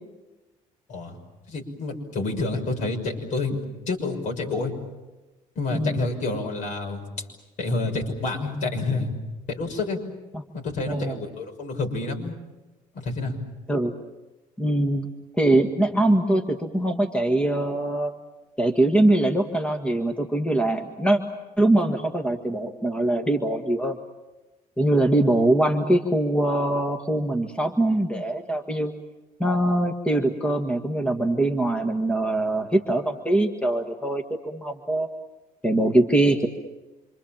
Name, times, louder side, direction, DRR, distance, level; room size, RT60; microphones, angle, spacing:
voice 1, 1.5-4.7 5.5-7.3 7.6-9.1 9.5-10.0 10.5-12.3 12.9-13.3, left 3 dB, 60° left, 4 dB, 6.3 m, -28 dB
voice 2, 5.7-6.1 10.3-10.4 10.9-11.2 13.7-13.9 14.6-15.1 15.3-18.1 18.6-21.2 21.6-24.0 24.8-28.9 29.4-35.1 35.6-36.5, right 1 dB, 10° left, 3 dB, 1.8 m, -22 dB
27.5 x 26.0 x 7.5 m, 1.1 s
cardioid pair, 135°, 14 cm